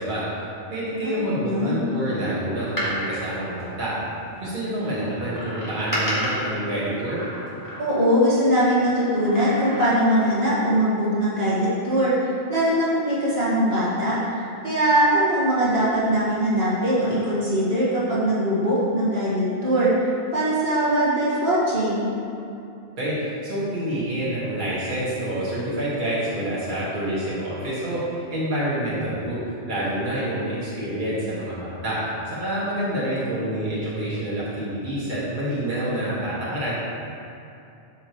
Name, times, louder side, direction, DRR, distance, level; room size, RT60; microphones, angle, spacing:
voice 1, 0.0-4.0 4.4-7.2 23.0-29.4 29.7-36.8, right 1 dB, 45° right, -9 dB, 1.8 m, -27 dB
voice 2, 1.0-1.9 7.8-14.2 14.6-22.0, equal, 60° right, -9 dB, 2.0 m, -21 dB
Door, 2.6-4.4 5.3-8.2 9.1-10.3 10.6-10.7, equal, 15° left, 2.0 m, -31 dB
12.5 x 5.1 x 3.1 m, 2.7 s
omnidirectional pair, 1.2 m